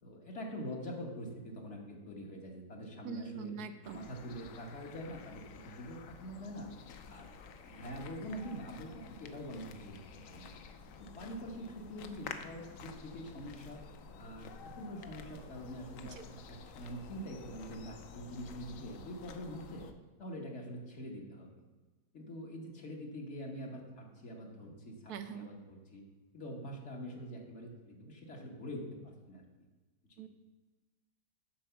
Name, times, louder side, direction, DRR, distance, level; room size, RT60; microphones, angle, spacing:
voice 1, 0.0-3.5 3.9-6.7 7.1-7.4 7.6-10.5 11.0-13.8 14.2-19.9 20.2-21.5 22.1-26.0 26.3-29.4, equal, 50° left, 0 dB, 1.5 m, -45 dB
voice 2, 3.0-4.0 16.2-16.3 25.1-25.5 30.2-30.3, right 7 dB, 75° right, 9 dB, 1.1 m, -43 dB
sound 1, 3.8-19.9, left 5 dB, 65° left, 0.9 m, -51 dB
7.5 x 4.8 x 6.8 m, 1.3 s
omnidirectional pair, 1.7 m